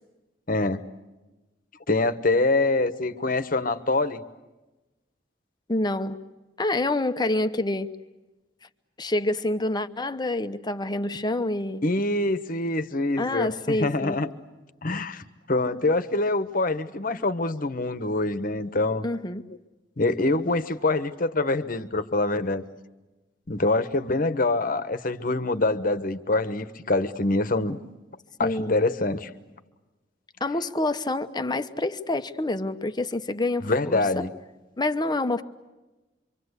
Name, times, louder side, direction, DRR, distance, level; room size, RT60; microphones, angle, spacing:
voice 1, 0.5-0.8 1.9-4.2 11.8-14.3 14.8-19.0 20.0-22.6 23.5-27.8 28.4-29.3 33.6-34.3, left 2 dB, 50° left, 11 dB, 1.2 m, -25 dB
voice 2, 5.7-6.2 6.6-7.9 9.0-11.8 13.2-14.2 19.0-19.4 28.4-28.7 30.4-34.2 34.8-35.4, left 2 dB, 25° left, 10 dB, 0.9 m, -27 dB
26.5 x 25.0 x 8.2 m, 1.1 s
head